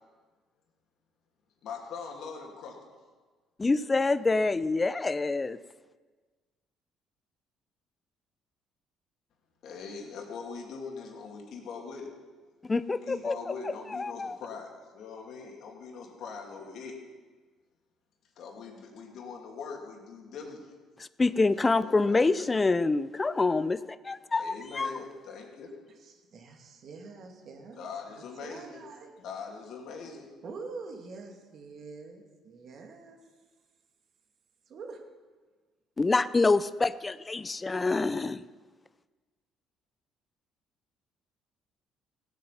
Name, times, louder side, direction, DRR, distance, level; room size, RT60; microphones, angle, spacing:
voice 1, 1.6-2.8 9.6-12.1 13.0-17.0 18.4-20.7 21.5-22.5 24.4-25.7 27.7-28.8 29.2-30.3, left 5 dB, 70° left, 1 dB, 2.6 m, -42 dB
voice 2, 3.6-5.6 12.6-13.3 13.6-14.4 21.0-24.9 36.0-38.4, left 3 dB, 25° left, 16 dB, 0.5 m, -26 dB
voice 3, 26.0-29.1 30.4-33.2 34.7-35.0, right 4 dB, 60° right, 3 dB, 2.3 m, -45 dB
16.5 x 8.7 x 5.9 m, 1.4 s
supercardioid pair, 80°, 0 cm